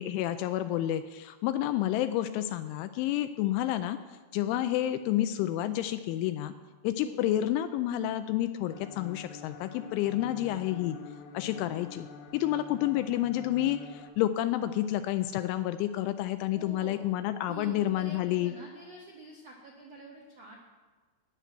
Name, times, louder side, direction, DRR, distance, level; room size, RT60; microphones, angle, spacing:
voice 1, 0.0-4.0 4.3-6.5 6.8-11.0 11.3-12.1 12.3-18.5, left 13 dB, 85° left, 10 dB, 2.8 m, -29 dB
voice 2, 7.0-7.3 16.5-17.1 17.5-20.5, right 2 dB, 80° right, -2 dB, 1.4 m, -47 dB
sound 1, 8.7-14.1, left 5 dB, 70° left, 3.3 m, -47 dB
14.0 x 6.0 x 9.2 m, 1.3 s
omnidirectional pair, 5.8 m